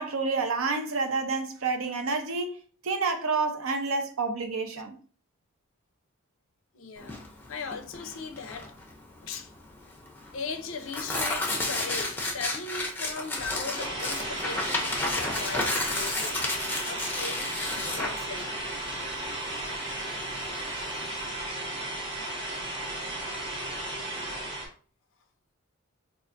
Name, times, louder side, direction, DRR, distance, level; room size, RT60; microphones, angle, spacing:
voice 1, 0.0-2.6 2.8-4.9, right 4 dB, 65° right, 0.6 m, -29 dB
voice 2, 6.7-8.7 9.2-9.5 10.3-16.5 16.8-18.5, left 4 dB, 60° left, 0.4 m, -38 dB
Tearing, 7.0-21.3, left 2 dB, 10° left, 0.5 m, -32 dB
sound 1, 13.8-24.7, right 1 dB, 25° right, 0.9 m, -35 dB
4.4 x 2.4 x 2.5 m
head